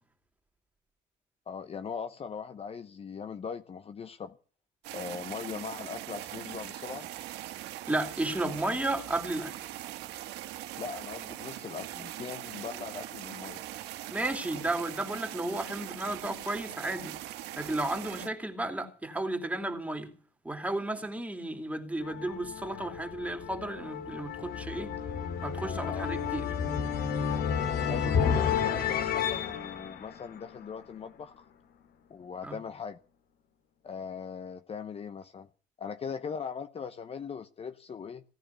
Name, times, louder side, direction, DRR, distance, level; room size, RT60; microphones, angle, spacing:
voice 1, 1.5-4.4 4.9-7.1 10.8-13.6 25.9-26.4 27.8-31.5 32.1-33.0 33.8-35.5 35.8-38.2, left 6 dB, 35° left, 0.9 m, -40 dB
sound 1, 4.8-18.3, right 14 dB, 85° right, 1.5 m, -41 dB
voice 2, 7.9-9.5 14.1-17.1 17.6-20.1 20.4-24.9 25.4-26.5 32.4-32.6, right 2 dB, 10° right, 3.0 m, -33 dB
Orchestral crescendo, 22.0-31.0, left 7 dB, 70° left, 2.4 m, -31 dB
17.5 x 10.0 x 7.0 m
cardioid pair, 110°, 17 cm